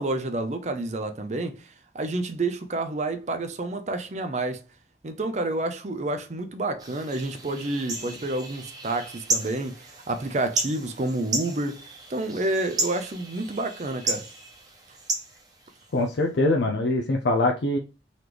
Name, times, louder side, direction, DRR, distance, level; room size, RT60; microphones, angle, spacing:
voice 1, 0.0-4.6 5.0-14.3, right 2 dB, 40° right, 0.5 m, -29 dB
sound 1, 6.8-16.2, right 2 dB, 20° right, 0.9 m, -34 dB
voice 2, 15.9-17.8, left 2 dB, 75° left, 0.5 m, -23 dB
4.0 x 3.0 x 3.3 m
head